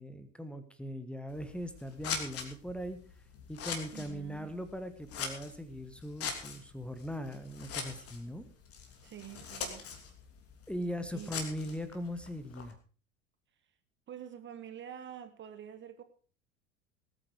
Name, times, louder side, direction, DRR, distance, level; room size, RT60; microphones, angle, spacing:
voice 1, 0.0-3.0 3.5-8.4 10.7-12.7, equal, 5° left, 11 dB, 1.5 m, -40 dB
Scissors, 1.3-12.7, left 6 dB, 40° left, 3.1 m, -43 dB
voice 2, 3.9-4.6 9.0-9.9 11.1-11.3 14.1-16.0, right 9 dB, 30° right, 10 dB, 1.3 m, -47 dB
19.5 x 9.0 x 5.0 m, 0.39 s
figure-of-eight pair, 75°, 37 cm